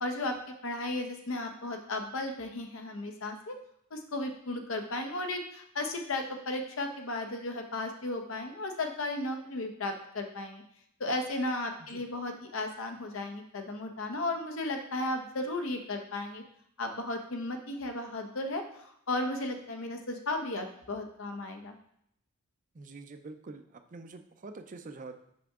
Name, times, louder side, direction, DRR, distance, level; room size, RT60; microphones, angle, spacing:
voice 1, 0.0-3.5 3.9-10.6 11.0-16.4 16.8-21.8, left 2 dB, 80° left, 5 dB, 0.9 m, -35 dB
voice 2, 22.7-25.1, right 3 dB, 40° right, 8 dB, 0.5 m, -46 dB
5.7 x 5.6 x 3.6 m, 0.72 s
head